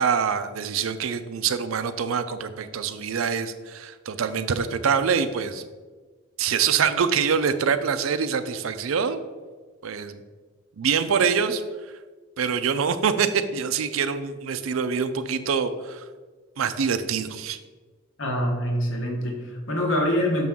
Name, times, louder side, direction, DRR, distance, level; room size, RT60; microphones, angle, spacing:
voice 1, 0.0-5.6 6.4-9.2 9.8-10.2 10.8-11.6 12.4-16.1 16.6-17.6, right 6 dB, 90° right, 11 dB, 0.5 m, -25 dB
voice 2, 18.2-20.5, equal, 70° left, 1 dB, 1.2 m, -25 dB
6.1 x 5.9 x 3.6 m, 1.4 s
head